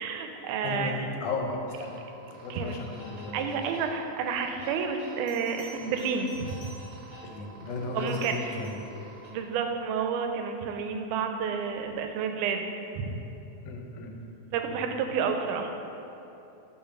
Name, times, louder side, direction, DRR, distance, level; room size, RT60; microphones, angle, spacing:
voice 1, 0.0-1.1 2.5-2.8 3.3-6.5 7.9-8.4 9.3-12.6 13.0-13.1 14.5-15.7, right 6 dB, 85° right, 5 dB, 2.0 m, -30 dB
voice 2, 0.6-1.9 2.4-3.7 7.2-8.2 8.6-8.8 13.6-14.1 14.7-14.8, left 3 dB, 80° left, 1 dB, 2.1 m, -35 dB
sound 1, 1.7-9.3, right 3 dB, 45° right, 1.0 m, -49 dB
Bell, 5.3-7.2 7.9-9.0 11.7-11.9, right 1 dB, 55° left, 2.2 m, -52 dB
5.6 x 4.3 x 5.8 m, 2.9 s
omnidirectional pair, 3.5 m